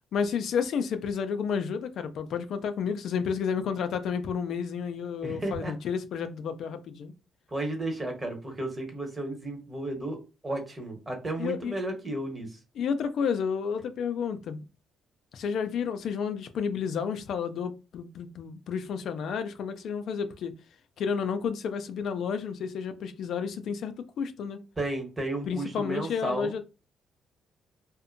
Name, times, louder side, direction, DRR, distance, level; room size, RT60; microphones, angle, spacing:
voice 1, 0.1-7.1 11.4-11.7 12.8-14.6 15.3-20.5 21.0-24.6 25.5-26.6, left 6 dB, 70° left, 0.3 m, -31 dB
voice 2, 5.2-5.7 7.5-12.6 24.8-26.5, right 2 dB, 25° right, 1.0 m, -33 dB
2.6 x 2.1 x 2.5 m
cardioid pair, 90°, 0 cm